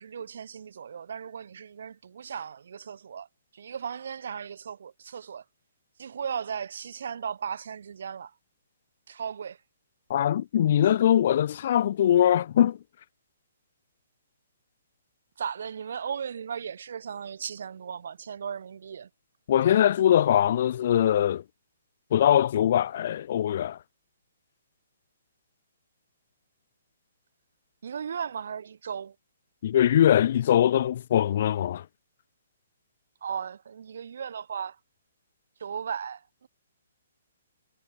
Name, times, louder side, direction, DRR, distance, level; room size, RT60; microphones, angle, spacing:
voice 1, 0.0-3.3 3.5-5.4 6.0-8.3 9.1-9.6 15.4-19.1 27.8-29.1 33.2-34.8 35.6-36.5, right 7 dB, 55° right, 0.9 m, -36 dB
voice 2, 10.1-12.8 19.5-21.4 22.1-23.8 29.6-31.8, left 10 dB, 45° left, 0.3 m, -22 dB
figure-of-eight pair, 125°, 0 cm